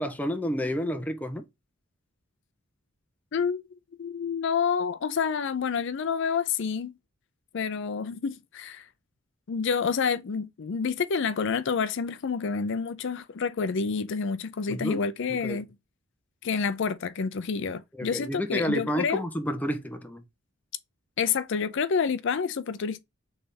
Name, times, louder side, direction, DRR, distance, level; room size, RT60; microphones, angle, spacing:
voice 1, 0.0-1.4 14.7-15.1 15.4-15.6 17.9-20.2, equal, 5° left, 0.5 m, -30 dB
voice 2, 3.3-3.6 4.0-6.9 7.5-8.9 9.5-15.7 16.4-19.2 21.2-23.0, left 6 dB, 55° left, 0.4 m, -28 dB
3.3 x 3.3 x 4.1 m
head